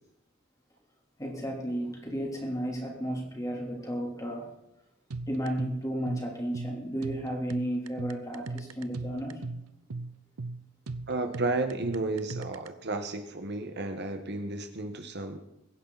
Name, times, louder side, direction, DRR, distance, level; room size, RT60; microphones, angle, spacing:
voice 1, 1.2-4.5 5.3-9.4 9.9-10.0, equal, 15° left, 0 dB, 3.3 m, -33 dB
sound 1, 5.1-12.7, right 3 dB, 80° right, 0.7 m, -38 dB
voice 2, 11.1-15.4, right 2 dB, 50° right, 6 dB, 1.3 m, -32 dB
23.0 x 10.5 x 4.1 m, 0.88 s
head